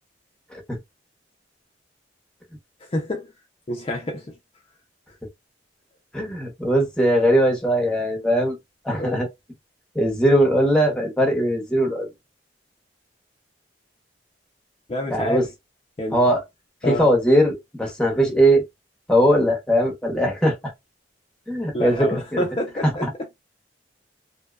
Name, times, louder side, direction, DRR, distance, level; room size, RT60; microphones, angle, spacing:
voice 1, 2.8-3.3 3.7-4.4 5.1-5.2 8.9-9.2 10.9-11.0 14.9-15.5 16.0-16.3 16.8-17.1 21.7-23.3, left 1 dB, 30° left, 0.5 m, -28 dB
voice 2, 6.1-8.6 8.8-9.3 9.9-12.1 15.1-15.4 16.1-16.4 16.9-18.6 19.1-20.5 21.5-22.4, equal, 5° left, 0.8 m, -20 dB
2.6 x 2.2 x 2.3 m
head